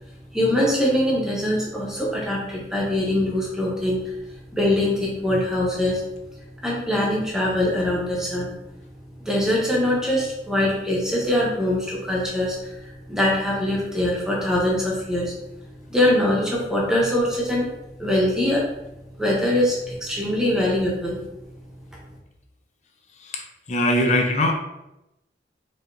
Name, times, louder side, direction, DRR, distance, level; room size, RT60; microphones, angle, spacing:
voice 1, 0.3-4.0 4.5-6.0 6.6-8.5 9.2-12.6 13.1-15.3 15.9-17.7 18.0-18.6 19.2-21.2, left 1 dB, 5° right, -4 dB, 0.8 m, -22 dB
voice 2, 23.7-24.5, left 1 dB, 40° left, 3 dB, 0.5 m, -21 dB
4.7 x 2.8 x 2.6 m, 0.90 s
head